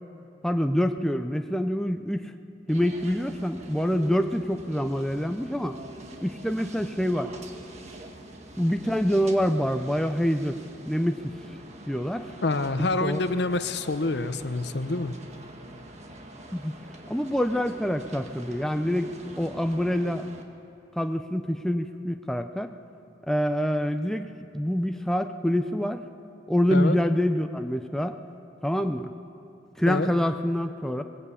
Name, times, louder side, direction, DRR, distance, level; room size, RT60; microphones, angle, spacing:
voice 1, 0.4-2.3 2.7-5.7 6.2-7.3 8.6-10.6 10.9-11.2 11.9-12.3 13.0-13.2 16.5-16.7 17.1-20.3 21.0-22.7 23.3-24.3 24.5-26.0 26.5-28.2 28.6-29.1 29.8-31.0, equal, 5° left, 6 dB, 0.6 m, -26 dB
sound 1, 2.7-20.4, right 1 dB, 35° right, 1.6 m, -45 dB
voice 2, 12.4-15.1 26.7-27.0 29.9-30.1, left 2 dB, 65° left, 10 dB, 0.9 m, -27 dB
20.5 x 17.5 x 8.5 m, 2.6 s
head